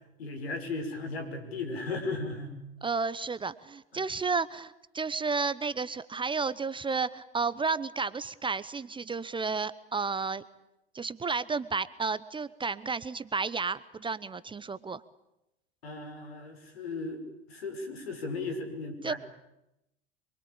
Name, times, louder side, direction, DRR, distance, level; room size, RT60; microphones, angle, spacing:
voice 1, 0.2-2.6 3.9-4.1 15.8-17.2 17.5-19.2, left 3 dB, 75° left, 6 dB, 6.5 m, -36 dB
voice 2, 2.8-10.4 10.9-15.0 19.0-19.1, right 4 dB, 15° right, 16 dB, 0.9 m, -32 dB
27.0 x 23.0 x 8.9 m, 0.89 s
figure-of-eight pair, 80°, 31 cm